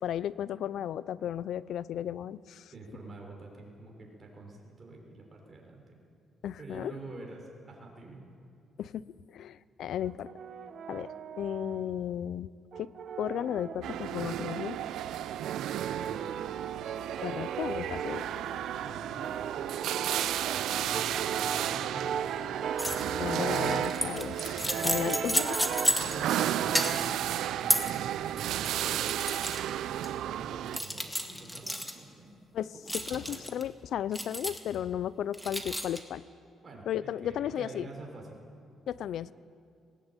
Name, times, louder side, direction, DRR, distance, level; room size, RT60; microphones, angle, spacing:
voice 1, 0.0-2.7 6.4-7.0 8.8-10.3 10.9-11.1 11.4-12.5 12.8-12.9 13.2-14.8 17.2-18.3 23.2-25.6 32.5-36.2 36.9-37.9 38.9-39.3, left 10 dB, 70° left, 18 dB, 0.5 m, -34 dB
voice 2, 2.7-6.0 6.6-8.2 15.8-16.3 18.8-19.7 20.5-22.3 24.6-25.1 25.8-29.3 30.0-32.3 32.8-33.4 36.6-38.4, right 2 dB, 35° right, 0 dB, 5.9 m, -46 dB
Brass instrument, 10.0-12.0 12.7-14.8 15.4-24.1 24.7-26.0 26.4-27.2, right 7 dB, 60° right, 1.2 m, -37 dB
sound 1, 13.8-30.8, right 11 dB, 80° right, 0.6 m, -33 dB
sound 2, 22.8-23.1 23.4-26.5 26.7-27.2 27.7-27.9 28.5-29.6 30.0-30.1 30.7-31.9 32.9-33.6 34.1-34.7 35.3-36.0, equal, 5° left, 2.2 m, -31 dB
18.5 x 18.5 x 8.9 m, 2.3 s
cardioid pair, 90°, 0 cm